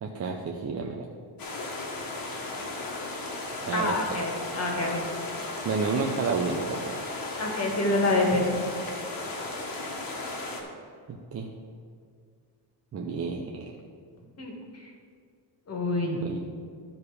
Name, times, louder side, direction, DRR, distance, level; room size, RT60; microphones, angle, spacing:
voice 1, 0.0-1.1 3.6-4.0 5.6-6.9 11.1-11.5 12.9-13.7 16.2-16.4, right 4 dB, 35° right, 0 dB, 0.7 m, -30 dB
sound 1, 1.4-10.6, left 2 dB, 50° left, 1.6 m, -35 dB
voice 2, 3.7-5.1 7.4-8.5 14.4-14.5 14.8-14.9 15.7-16.1, left 2 dB, 35° left, 0 dB, 1.8 m, -27 dB
12.5 x 4.9 x 4.9 m, 2.2 s
cardioid pair, 140°, 45 cm